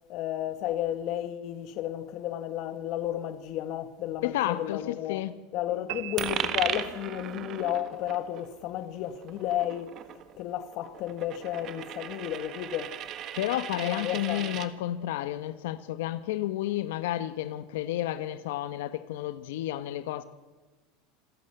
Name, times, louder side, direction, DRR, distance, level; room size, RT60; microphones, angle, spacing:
voice 1, 0.1-5.2 5.5-9.9 10.4-12.9 13.7-14.6, left 12 dB, 45° left, 1.6 m, -32 dB
voice 2, 4.2-5.3 13.4-20.2, left 13 dB, 80° left, 1.3 m, -31 dB
sound 1, 5.9-7.4, right 18 dB, 65° right, 1.4 m, -41 dB
Coin (dropping), 6.2-14.7, right 10 dB, 35° right, 1.5 m, -37 dB
27.5 x 16.5 x 8.1 m
supercardioid pair, 160°, 0 cm